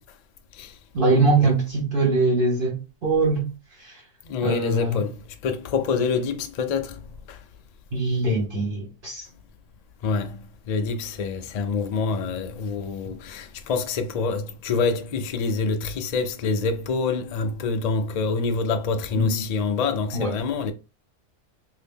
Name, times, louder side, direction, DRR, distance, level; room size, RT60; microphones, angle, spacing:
voice 1, 0.9-3.5 3.8-3.9 4.4-5.0 7.9-9.2 19.1-19.3 20.1-20.3, right 2 dB, 45° right, 1.2 m, -22 dB
voice 2, 4.3-5.1 5.4-7.0 7.3-7.4 10.0-10.4 10.7-20.7, left 4 dB, 90° left, 0.3 m, -26 dB
2.8 x 2.7 x 3.4 m
omnidirectional pair, 1.3 m